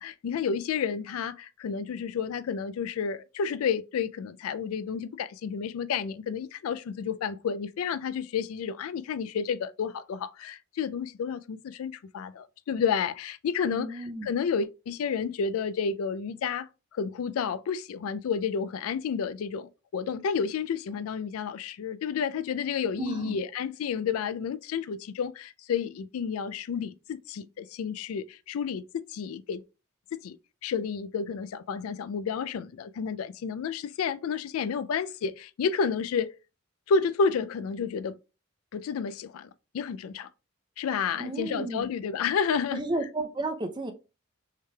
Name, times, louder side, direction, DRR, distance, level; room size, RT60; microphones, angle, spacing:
voice 1, 0.0-29.6 30.1-30.4 30.6-36.3 36.9-38.2 38.7-39.5 39.7-40.3 40.8-42.8, left 6 dB, 85° left, 0.3 m, -31 dB
voice 2, 13.7-14.3 23.0-23.3 41.2-41.9 42.7-43.9, right 2 dB, 20° right, 0.5 m, -32 dB
5.6 x 3.3 x 2.2 m
head